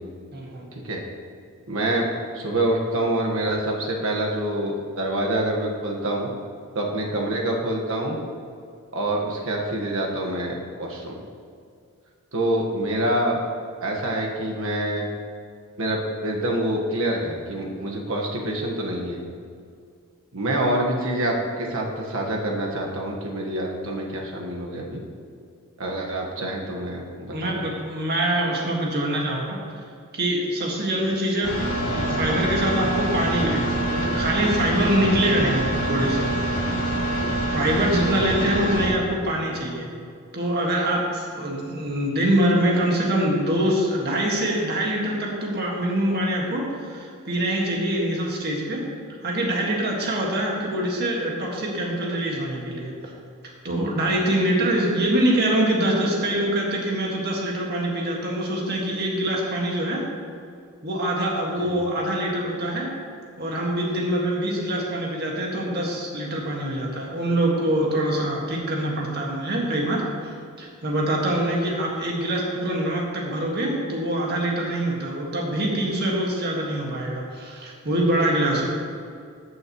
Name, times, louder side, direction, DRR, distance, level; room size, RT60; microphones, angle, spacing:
voice 1, 0.3-0.7 27.3-29.6 30.1-31.6 31.8-36.3 37.5-39.9 40.3-48.8 49.2-52.9 53.6-60.0 60.8-62.9 63.4-78.7, right 1 dB, 45° right, -2 dB, 1.7 m, -24 dB
voice 2, 1.7-6.3 6.7-8.2 8.9-11.2 12.3-13.4 13.8-15.1 15.8-19.2 20.3-25.0 25.8-27.6 37.9-39.0 61.6-61.7, right 1 dB, 65° right, -1 dB, 1.4 m, -26 dB
sound 1, 31.4-38.9, right 1 dB, 70° left, 1.4 m, -25 dB
14.0 x 6.4 x 3.0 m, 2.3 s
head